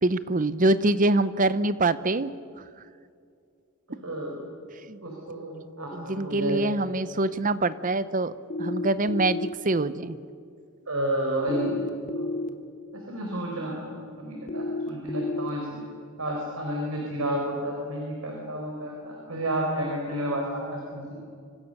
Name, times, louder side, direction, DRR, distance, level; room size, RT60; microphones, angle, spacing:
voice 1, 0.0-2.3 4.9-5.0 5.9-8.3 8.6-10.2, right 2 dB, 40° right, 15 dB, 0.8 m, -24 dB
voice 2, 4.0-4.4 5.0-6.6 10.9-11.8 12.1-12.3 12.9-15.8 16.2-21.1, right 1 dB, 75° right, 0 dB, 4.5 m, -31 dB
sound 1, 8.5-9.5 11.5-12.5 14.5-15.5, left 2 dB, 35° left, 1.4 m, -31 dB
26.0 x 25.5 x 6.7 m, 2.3 s
head